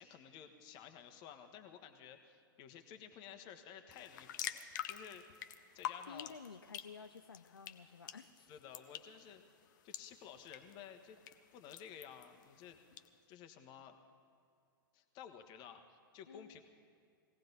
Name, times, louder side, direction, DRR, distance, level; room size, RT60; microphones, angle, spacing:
voice 1, 0.0-5.2 5.7-6.3 8.5-9.4 9.8-11.2 11.5-12.8 13.3-14.0 14.9-16.6, left 8 dB, 40° left, 7 dB, 1.3 m, -54 dB
sound 1, 3.9-13.1, left 10 dB, 55° left, 0.8 m, -48 dB
voice 2, 6.1-8.5 16.3-16.6, left 6 dB, 85° left, 9 dB, 0.5 m, -53 dB
20.5 x 17.0 x 4.1 m, 2.3 s
figure-of-eight pair, 100°, 12 cm